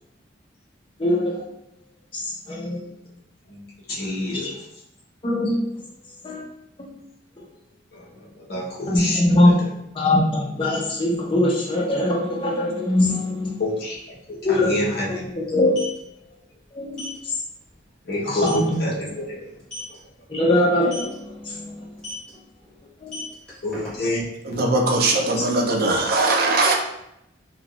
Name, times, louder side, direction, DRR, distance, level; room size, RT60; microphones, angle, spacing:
voice 1, 1.0-1.4 2.1-2.8 4.3-4.5 5.2-5.6 6.2-6.4 8.9-9.6 9.9-13.6 14.4-14.8 15.3-16.0 16.7-17.1 18.4-18.8 20.3-21.7 23.0-23.2, left 1 dB, 25° left, -3 dB, 0.6 m, -21 dB
voice 2, 3.9-4.6 7.9-9.5 13.6-14.0 14.3-15.2 18.0-19.4 23.6-24.6 25.4-25.7, left 1 dB, 55° left, -5 dB, 0.8 m, -28 dB
sound 1, 13.9-14.0 14.3-14.5 15.5-16.0 16.9-17.2 17.6-17.8 18.1-18.2 18.5-18.7 19.6-20.0 20.8-21.1 22.0-22.3 22.9-24.2, left 1 dB, 5° left, 1.1 m, -36 dB
voice 3, 24.6-26.8, right 2 dB, 50° right, 2 dB, 0.4 m, -20 dB
3.4 x 2.2 x 2.3 m, 0.81 s
head